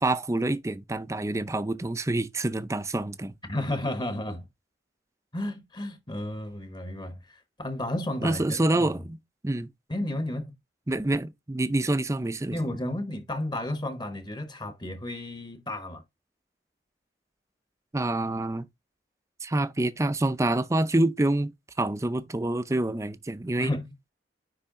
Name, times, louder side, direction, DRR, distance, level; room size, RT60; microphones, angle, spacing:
voice 1, 0.0-3.3 8.2-9.2 9.4-9.7 10.9-12.6 17.9-18.7 19.4-21.5 21.8-23.7, right 2 dB, 15° right, 0.5 m, -27 dB
voice 2, 3.5-4.5 5.3-8.9 9.9-10.5 12.5-16.0 23.6-23.9, left 1 dB, 25° left, 1.0 m, -32 dB
9.9 x 3.3 x 3.7 m
head